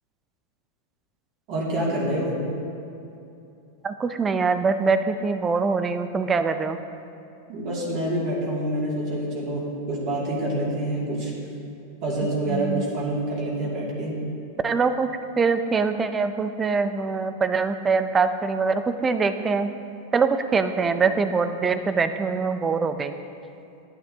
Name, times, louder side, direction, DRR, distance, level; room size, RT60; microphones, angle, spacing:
voice 1, 1.5-2.4 7.5-11.3 12.0-14.2, right 1 dB, 45° right, -5 dB, 2.3 m, -27 dB
voice 2, 3.8-6.8 12.5-12.8 14.6-15.1 15.4-19.7 20.1-23.1, right 4 dB, 20° right, 10 dB, 0.4 m, -23 dB
11.5 x 9.1 x 2.8 m, 2.8 s
supercardioid pair, 130°, 0 cm